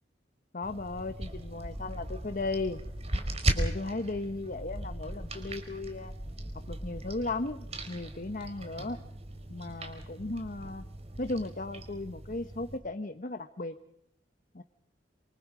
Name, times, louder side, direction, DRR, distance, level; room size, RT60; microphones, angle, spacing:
voice 1, 0.5-2.8 3.5-6.1 6.7-9.0 9.5-10.9 11.2-13.8 14.5-14.6, left 2 dB, 45° left, 9 dB, 1.1 m, -36 dB
sound 1, 0.6-12.8, right 1 dB, 35° right, 4.2 m, -37 dB
27.0 x 26.0 x 5.0 m, 0.73 s
head